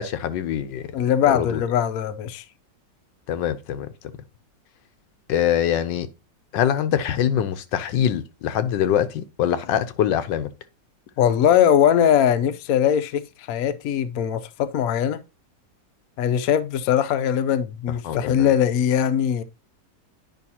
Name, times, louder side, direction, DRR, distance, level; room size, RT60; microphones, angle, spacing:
voice 1, 0.0-0.8 1.3-1.6 3.3-3.9 5.3-6.1 6.5-10.5 18.0-18.5, left 9 dB, 90° left, 1.4 m, -23 dB
voice 2, 0.9-2.4 11.2-15.2 16.2-19.4, left 9 dB, 65° left, 0.9 m, -21 dB
9.4 x 5.4 x 2.8 m
omnidirectional pair, 1.9 m